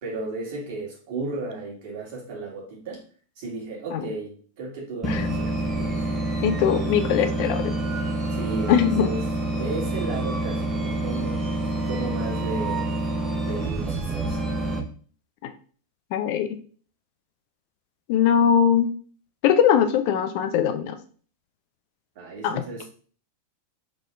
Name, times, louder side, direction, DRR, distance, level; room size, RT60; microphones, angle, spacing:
voice 1, 0.0-3.0 3.4-6.0 8.3-9.2 9.5-11.4 11.9-12.9 13.4-14.4 22.2-22.8, right 3 dB, 50° right, -3 dB, 1.9 m, -34 dB
sound 1, 5.0-14.8, right 2 dB, 20° right, 0.8 m, -27 dB
voice 2, 6.4-7.7 8.7-9.1 16.1-16.6 18.1-18.9 19.4-21.0 22.4-22.6, left 9 dB, 45° left, 8 dB, 0.6 m, -21 dB
3.7 x 3.7 x 3.3 m, 0.43 s
figure-of-eight pair, 90°, 0 cm